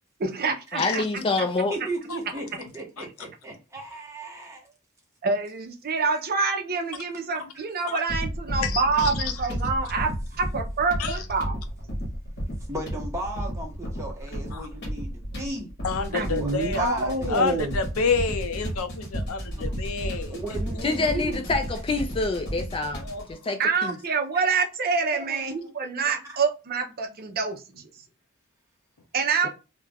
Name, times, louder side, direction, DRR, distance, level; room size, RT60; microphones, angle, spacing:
voice 1, 0.2-1.2 5.2-10.1 10.4-11.6 16.1-17.7 23.6-27.8 29.1-29.5, right 4 dB, 45° right, 0.5 m, -26 dB
voice 2, 0.7-1.7 20.8-24.0 29.4-29.5, left 3 dB, 25° left, 0.3 m, -27 dB
voice 3, 1.7-4.7 6.0-6.2 7.5-7.6 12.7-15.7 16.4-16.5 16.8-17.7 19.6-19.8 20.3-21.5 25.1-25.7 26.2-26.3, right 1 dB, 15° right, 0.8 m, -35 dB
sound 1, 8.1-23.3, equal, 50° left, 0.9 m, -33 dB
voice 4, 8.6-9.3 11.0-11.3 14.5-14.7 15.8-16.9 17.3-20.4 23.0-23.3, left 5 dB, 85° left, 0.5 m, -29 dB
2.3 x 2.1 x 3.3 m
head